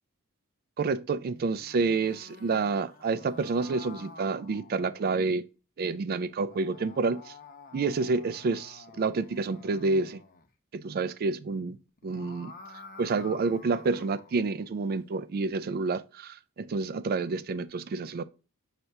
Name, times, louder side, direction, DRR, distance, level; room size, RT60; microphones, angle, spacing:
voice 1, 0.8-5.4 5.8-7.3 7.7-10.2 10.7-11.8 12.0-12.5 13.0-18.2, right 4 dB, 45° right, 0.4 m, -29 dB
sound 1, 1.4-5.3 6.3-10.5 11.9-14.4, left 4 dB, 40° left, 0.7 m, -50 dB
5.8 x 3.3 x 2.6 m
head